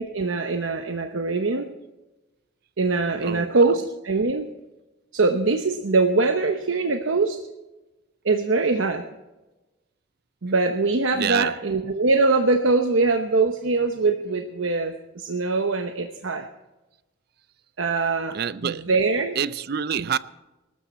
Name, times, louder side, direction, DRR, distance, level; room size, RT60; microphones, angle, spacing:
voice 1, 0.0-1.7 2.8-4.5 5.1-7.4 8.2-9.0 10.4-16.5 17.8-18.4 18.6-19.4 20.0-20.1, right 3 dB, 90° right, 0.9 m, -22 dB
voice 2, 3.2-3.6 11.1-11.6 18.3-18.8 19.4-20.2, right 7 dB, 55° right, 0.5 m, -26 dB
20.5 x 13.0 x 4.3 m
head